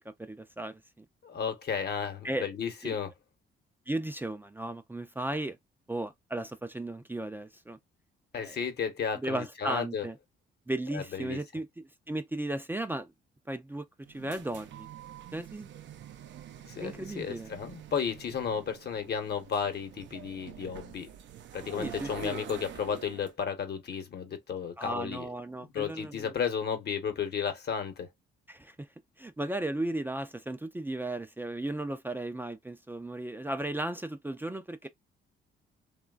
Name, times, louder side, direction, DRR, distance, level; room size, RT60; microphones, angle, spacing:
voice 1, 0.3-1.1 2.2-2.5 2.8-3.0 3.9-5.6 5.9-7.8 8.3-8.6 9.2-10.2 10.7-11.7 12.1-13.1 13.5-14.9 15.3-15.7 16.8-17.5 21.8-22.4 24.8-26.3 28.5-28.9 29.2-34.9, right 1 dB, 10° right, 0.4 m, -35 dB
voice 2, 1.2-3.1 8.3-10.1 10.9-11.4 16.6-21.1 21.5-25.3 25.7-28.1, left 7 dB, 55° left, 1.0 m, -33 dB
sound 1, 14.0-23.3, right 10 dB, 65° right, 0.5 m, -46 dB
3.1 x 2.2 x 2.3 m
cardioid pair, 90°, 20 cm